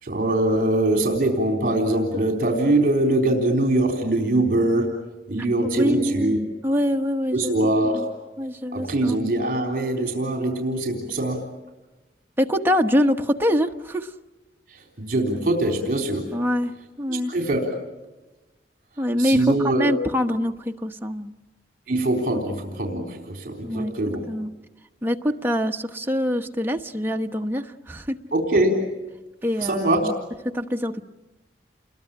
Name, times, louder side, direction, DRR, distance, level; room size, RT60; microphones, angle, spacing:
voice 1, 0.0-5.0 5.3-6.4 7.3-8.1 8.7-11.5 14.7-16.3 17.1-17.7 19.2-20.0 21.9-24.2 28.3-29.0 29.6-30.1, right 1 dB, 55° right, 2 dB, 3.7 m, -23 dB
voice 2, 5.7-6.4 6.6-7.5 7.9-8.0 8.4-9.2 12.4-14.1 16.3-17.3 19.0-21.3 22.3-22.4 23.6-23.9 24.3-24.5 25.0-28.2 29.4-30.1 30.4-31.0, equal, 10° right, 4 dB, 1.1 m, -24 dB
29.5 x 21.5 x 8.9 m, 1.1 s
head